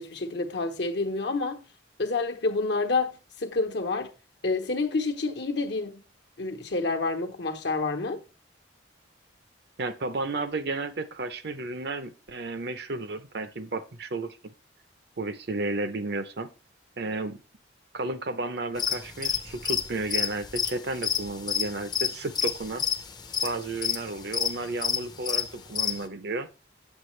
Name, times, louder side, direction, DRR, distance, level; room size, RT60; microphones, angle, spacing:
voice 1, 0.0-1.6 2.0-4.1 4.4-6.0 6.4-8.2, left 3 dB, 65° left, 1.1 m, -28 dB
voice 2, 9.8-14.5 15.2-16.5 17.0-17.4 17.9-22.8 23.4-26.5, right 2 dB, 55° right, 0.7 m, -32 dB
sound 1, 18.8-26.0, left 8 dB, 20° left, 0.6 m, -29 dB
8.1 x 7.4 x 3.2 m
head